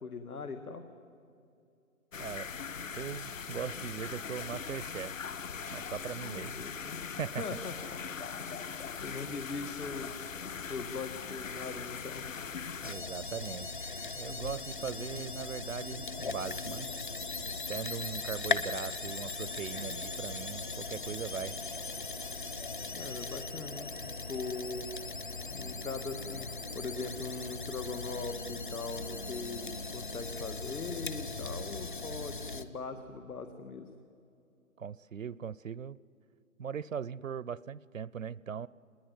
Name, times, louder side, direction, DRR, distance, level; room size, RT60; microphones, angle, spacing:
voice 1, 0.0-0.8 6.2-6.9 7.4-7.7 9.0-10.3 10.7-12.2 23.0-23.9 24.3-24.9 25.5-26.5 26.7-33.9, left 4 dB, 90° left, 7 dB, 1.9 m, -40 dB
sound 1, 2.1-12.9, left 6 dB, 60° left, 1.0 m, -41 dB
voice 2, 2.2-2.5 2.9-5.3 5.7-6.5 7.2-7.5 12.8-13.9 14.2-16.9 17.7-21.6 34.8-36.0 36.6-38.7, right 7 dB, 65° right, 21 dB, 0.6 m, -39 dB
sound 2, 12.8-32.6, left 3 dB, 35° left, 0.9 m, -39 dB
26.0 x 21.0 x 9.6 m, 2.5 s
hypercardioid pair, 175°, 43 cm